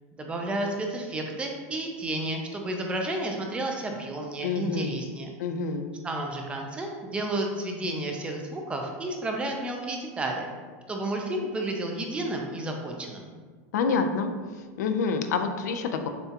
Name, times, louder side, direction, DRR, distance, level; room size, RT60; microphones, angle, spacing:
voice 1, 0.1-5.4 6.0-10.5 10.9-13.3, right 1 dB, 10° right, 2 dB, 0.5 m, -31 dB
voice 2, 4.4-5.0 5.4-5.9 13.7-14.3 14.8-16.1, left 5 dB, 90° left, 7 dB, 0.4 m, -27 dB
6.7 x 2.3 x 2.8 m, 1.5 s
supercardioid pair, 150°, 9 cm